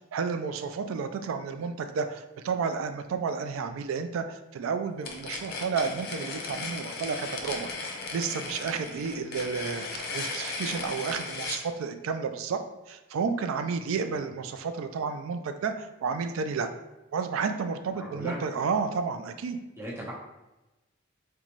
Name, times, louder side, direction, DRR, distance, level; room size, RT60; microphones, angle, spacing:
voice 1, 0.1-7.7 8.1-12.6 12.9-16.7 17.1-19.6, right 5 dB, 80° right, 9 dB, 0.3 m, -31 dB
sound 1, 5.0-11.6, left 3 dB, 50° left, 0.5 m, -36 dB
voice 2, 17.9-18.4 19.8-20.1, equal, 15° right, -6 dB, 0.8 m, -38 dB
3.9 x 2.2 x 3.0 m, 1.0 s
head